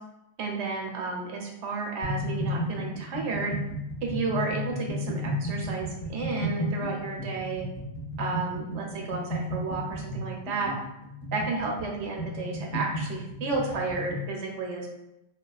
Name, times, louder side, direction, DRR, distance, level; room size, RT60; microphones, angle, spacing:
voice 1, 0.4-3.6 4.0-7.7 8.2-10.7 11.3-14.9, right 4 dB, 80° right, 0 dB, 0.9 m, -32 dB
sound 1, 2.0-14.3, equal, 40° left, 0.9 m, -33 dB
3.3 x 2.3 x 2.3 m, 0.88 s
omnidirectional pair, 1.2 m